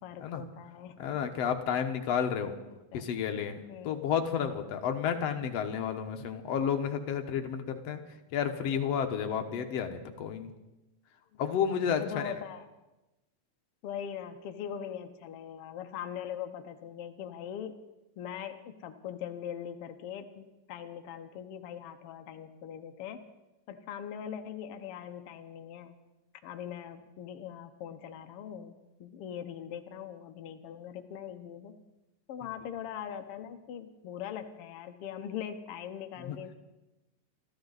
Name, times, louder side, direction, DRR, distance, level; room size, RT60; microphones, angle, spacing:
voice 1, 0.0-1.0 2.9-3.1 3.7-4.2 11.3-11.4 12.0-12.7 13.8-17.7 18.2-23.2 23.7-25.9 26.4-28.7 29.0-31.8 32.3-36.5, left 9 dB, 85° left, 6 dB, 1.2 m, -41 dB
voice 2, 1.0-2.5 2.9-3.6 3.8-8.0 8.3-10.5 11.4-12.3 36.2-36.4, left 7 dB, 60° left, 5 dB, 1.8 m, -31 dB
27.5 x 13.0 x 4.0 m, 1.0 s
omnidirectional pair, 3.9 m